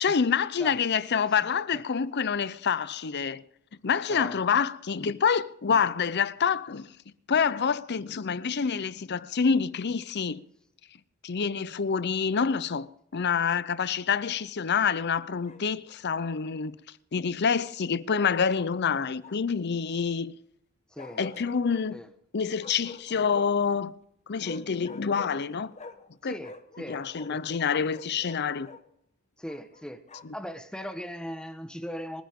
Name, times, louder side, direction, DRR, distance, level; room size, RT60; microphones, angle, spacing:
voice 1, 0.0-3.4 3.8-6.9 7.3-10.4 11.2-12.9 13.1-16.8 17.1-20.3 21.2-22.0 22.3-24.0 24.3-25.7 26.2-26.4 26.9-28.7, left 6 dB, 55° left, 0.6 m, -27 dB
Bark, 15.4-16.1 18.5-19.6 21.0-21.9 22.6-23.7 24.4-26.1 26.4-28.8 29.5-30.4, left 2 dB, 35° left, 1.0 m, -47 dB
voice 2, 26.2-27.0 27.3-27.4 29.4-30.0 30.3-32.2, equal, 5° left, 1.1 m, -39 dB
27.5 x 10.0 x 3.7 m
head